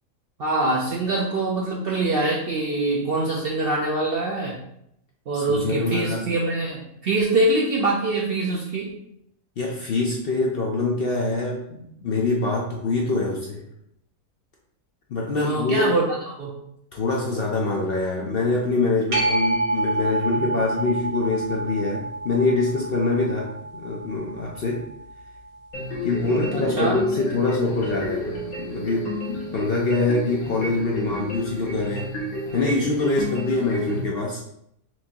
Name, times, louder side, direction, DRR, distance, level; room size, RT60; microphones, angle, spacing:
voice 1, 0.4-4.6 5.3-9.0 15.3-16.0 16.4-16.5 20.4-20.6 26.5-27.0, right 2 dB, 65° right, -3 dB, 0.6 m, -24 dB
voice 2, 5.3-6.2 9.6-13.6 15.1-15.9 16.9-24.8 26.0-32.1 32.5-34.4, left 3 dB, 60° left, -2 dB, 0.6 m, -24 dB
sound 1, 19.1-26.3 31.8-31.9, right 2 dB, 80° right, 1.7 m, -29 dB
sound 2, 25.7-34.0, left 1 dB, 75° left, 1.4 m, -32 dB
4.4 x 2.6 x 2.8 m, 0.75 s
omnidirectional pair, 1.5 m